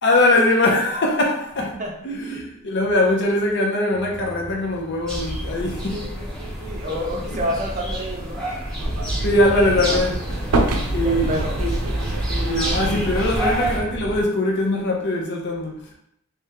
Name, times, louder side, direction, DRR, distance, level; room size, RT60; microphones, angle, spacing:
voice 1, 0.0-1.7 2.0-6.1 6.9-7.4 9.2-10.6 10.9-11.7 12.2-15.9, left 1 dB, 55° left, 0 dB, 0.7 m, -22 dB
voice 2, 1.6-1.9 5.9-8.4 11.0-11.6, equal, 35° right, 0 dB, 0.6 m, -29 dB
sound 1, 3.9-13.8, left 1 dB, 90° left, 1.2 m, -39 dB
sound 2, 5.1-13.8, right 1 dB, ahead, 0.9 m, -28 dB
sound 3, 8.8-14.2, right 2 dB, 90° right, 0.5 m, -27 dB
3.5 x 3.3 x 2.8 m, 0.76 s
head